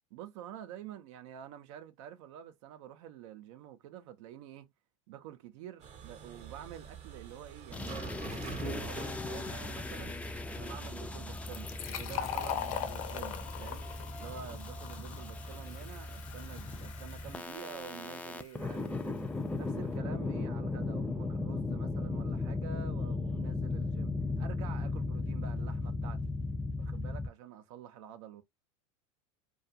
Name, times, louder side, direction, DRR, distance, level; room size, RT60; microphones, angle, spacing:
voice 1, 0.1-4.7 5.1-8.0 8.4-10.2 10.5-13.9 14.2-24.1 24.4-26.2 26.8-28.4, right 10 dB, 65° right, 0.5 m, -48 dB
sound 1, 5.8-11.0, right 7 dB, 40° right, 0.8 m, -46 dB
sound 2, 7.7-27.3, left 3 dB, 10° left, 0.3 m, -37 dB
Fill (with liquid), 11.3-18.7, left 9 dB, 65° left, 0.7 m, -41 dB
2.4 x 2.3 x 2.5 m
hypercardioid pair, 100°, 17 cm